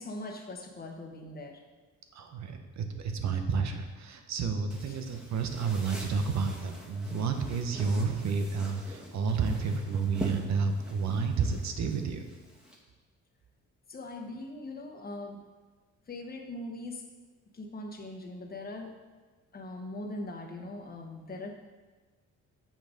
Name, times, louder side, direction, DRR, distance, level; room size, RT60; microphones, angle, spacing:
voice 1, 0.0-1.6 4.9-5.0 13.9-15.4 16.1-17.0 17.5-18.9 19.5-21.5, left 2 dB, 30° left, 2 dB, 1.2 m, -41 dB
voice 2, 2.1-12.2, right 5 dB, 65° right, 6 dB, 1.0 m, -30 dB
sound 1, 4.7-12.8, equal, 5° right, 1.6 m, -44 dB
6.8 x 6.0 x 5.1 m, 1.3 s
cardioid pair, 90°, 30 cm